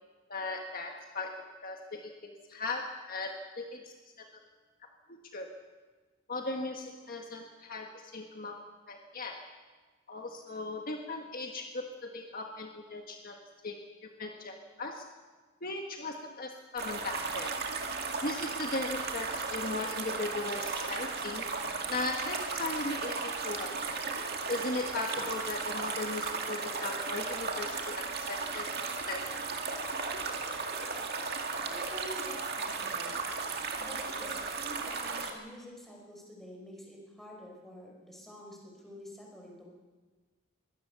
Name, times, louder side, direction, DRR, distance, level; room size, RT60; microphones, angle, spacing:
voice 1, 0.3-4.2 5.3-5.5 6.3-8.6 8.9-9.4 10.1-13.4 13.6-13.8 14.2-15.0 15.6-17.5 18.2-21.5 21.9-23.7 24.5-28.7 29.1-29.2 29.7-29.8, left 2 dB, 45° left, 2 dB, 1.6 m, -38 dB
sound 1, 16.8-35.3, right 4 dB, 50° right, 2.2 m, -35 dB
voice 2, 31.7-33.2 33.8-39.7, equal, ahead, -2 dB, 5.1 m, -48 dB
23.0 x 17.5 x 6.9 m, 1.3 s
head